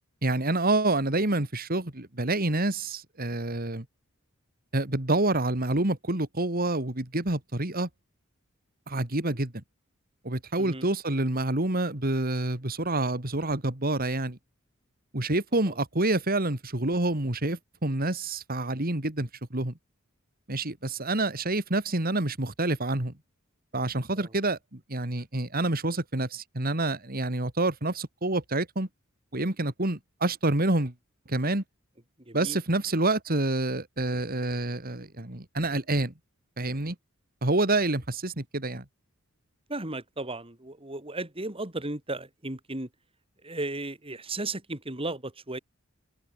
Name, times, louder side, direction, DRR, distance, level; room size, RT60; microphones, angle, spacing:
voice 1, 0.2-3.8 4.7-7.9 8.9-9.6 10.2-14.4 15.1-19.7 20.5-23.1 23.7-28.9 29.3-30.9 31.3-31.6 32.3-36.1 36.6-36.9 37.4-38.8, right 2 dB, 45° right, 2.8 m, -27 dB
voice 2, 32.3-32.6 39.7-42.9 43.4-45.6, right 2 dB, 25° right, 3.6 m, -35 dB
open air
head